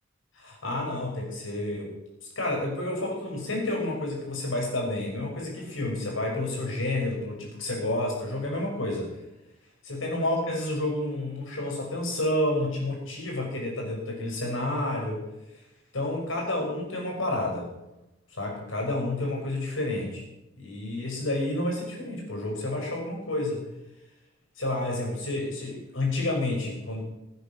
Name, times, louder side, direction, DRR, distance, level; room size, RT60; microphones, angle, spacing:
voice 1, 0.3-1.9 2.2-9.1 9.8-15.2 15.9-17.7 18.3-20.2 20.6-23.6 24.6-27.0, left 1 dB, 90° left, 0 dB, 5.8 m, -30 dB
15.5 x 9.9 x 6.4 m, 0.94 s
head